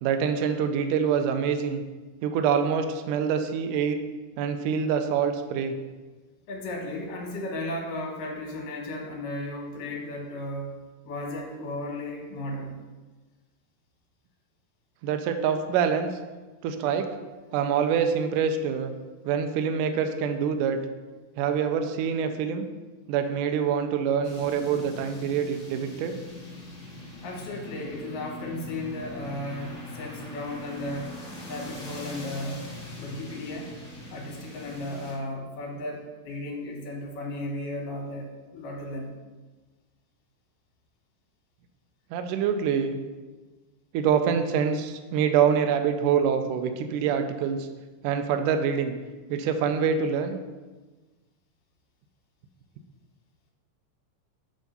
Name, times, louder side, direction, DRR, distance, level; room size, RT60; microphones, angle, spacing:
voice 1, 0.0-1.8 2.2-4.0 4.4-5.8 15.0-16.1 16.6-17.1 17.5-18.9 19.2-20.8 21.4-22.7 23.1-26.1 42.1-43.0 43.9-47.7 48.0-48.9 49.3-50.4, right 7 dB, 80° right, 7 dB, 1.9 m, -25 dB
voice 2, 6.5-10.7 11.0-12.8 27.2-31.2 31.4-32.6 32.9-33.7 34.1-39.1, left 1 dB, 75° left, -1 dB, 2.7 m, -35 dB
sound 1, 24.2-35.1, left 2 dB, 50° left, 1.4 m, -41 dB
8.0 x 3.7 x 5.4 m, 1.3 s
omnidirectional pair, 4.1 m